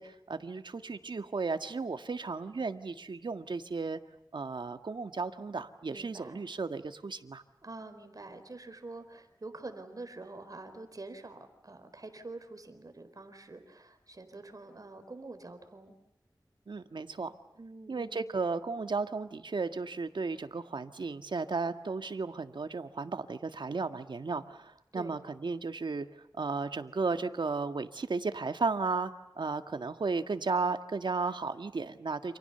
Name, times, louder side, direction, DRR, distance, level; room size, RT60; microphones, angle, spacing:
voice 1, 0.0-4.0 4.3-7.4 16.7-17.3 17.9-26.1 26.4-29.1 29.4-32.4, right 4 dB, 80° right, 9 dB, 1.7 m, -34 dB
voice 2, 5.9-6.4 7.6-16.0 17.5-18.2 24.9-25.2, right 2 dB, 50° right, 8 dB, 4.3 m, -46 dB
29.5 x 28.0 x 6.9 m, 0.82 s
wide cardioid pair, 75°, 8 cm